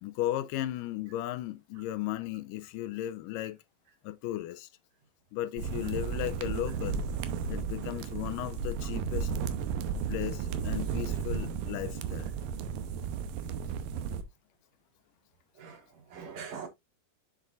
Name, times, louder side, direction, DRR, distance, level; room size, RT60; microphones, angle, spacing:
voice 1, 0.0-3.6 4.0-4.7 5.3-7.0 7.5-9.3 9.8-12.3, left 14 dB, 80° left, 2.2 m, -35 dB
sound 1, 5.6-14.2, right 6 dB, 90° right, 2.5 m, -34 dB
voice 2, 15.6-16.7, right 6 dB, 65° right, 2.1 m, -43 dB
7.4 x 6.7 x 2.4 m
omnidirectional pair, 3.9 m